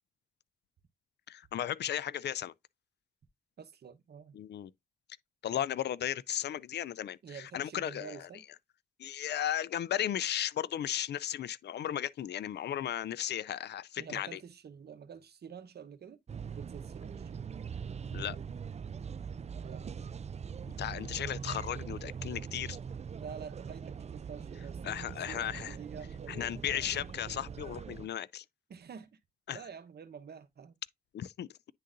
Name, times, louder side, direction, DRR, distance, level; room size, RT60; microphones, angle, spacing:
voice 1, 1.3-2.5 4.3-4.7 5.4-8.3 9.0-14.4 18.1-18.4 20.8-22.8 24.8-25.7 26.3-28.4 29.5-29.6 31.1-31.5, left 11 dB, 80° left, 0.4 m, -35 dB
voice 2, 3.6-4.4 7.2-8.4 14.0-16.2 16.5-17.5 19.6-20.2 23.1-26.6 28.7-29.1 29.5-30.7, right 7 dB, 70° right, 1.0 m, -48 dB
sound 1, 16.3-28.1, right 6 dB, 40° right, 0.4 m, -42 dB
9.8 x 3.8 x 2.5 m
cardioid pair, 60°, 17 cm